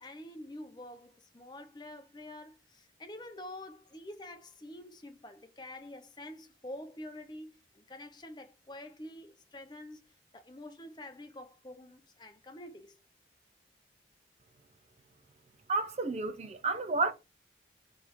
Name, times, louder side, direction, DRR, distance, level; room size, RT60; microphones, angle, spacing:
voice 1, 0.0-10.0 10.3-13.0, left 1 dB, 25° left, 0.7 m, -47 dB
voice 2, 15.7-17.1, right 3 dB, 35° right, 0.6 m, -31 dB
3.5 x 3.2 x 4.7 m
head